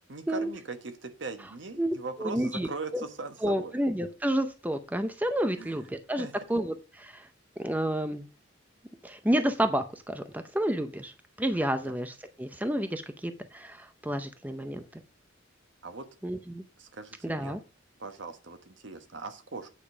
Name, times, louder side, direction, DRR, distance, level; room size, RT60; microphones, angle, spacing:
voice 1, 0.1-3.7 5.6-5.7 6.2-6.3 11.9-12.0 15.8-16.1 16.8-17.5 18.0-19.7, right 3 dB, 65° right, 8 dB, 1.3 m, -40 dB
voice 2, 1.8-3.0 3.4-7.3 7.6-8.3 9.0-15.0 16.2-16.6 17.2-17.6, right 1 dB, 10° right, 9 dB, 0.6 m, -30 dB
8.8 x 5.2 x 4.9 m, 0.31 s
head